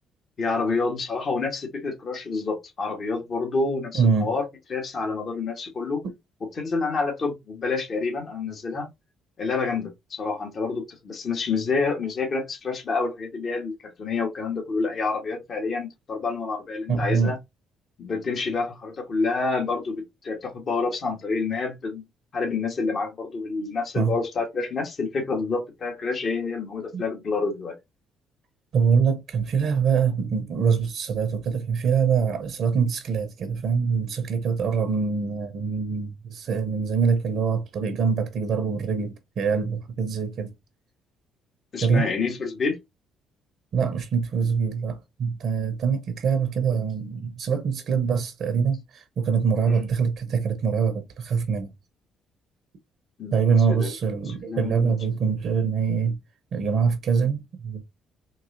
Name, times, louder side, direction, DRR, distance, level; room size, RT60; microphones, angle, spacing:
voice 1, 0.4-4.4 4.7-6.0 6.6-8.9 9.4-17.4 18.0-22.0 22.3-27.7 41.7-42.8 49.7-49.8 53.2-53.9 54.3-54.9, left 4 dB, 50° left, 1.3 m, -28 dB
voice 2, 3.9-4.4 16.9-17.3 24.0-24.1 26.9-27.0 28.7-40.5 41.8-42.1 43.7-51.7 53.3-56.2 56.5-57.8, right 6 dB, 65° right, 0.7 m, -24 dB
3.8 x 2.7 x 2.6 m
hypercardioid pair, 55°, 0 cm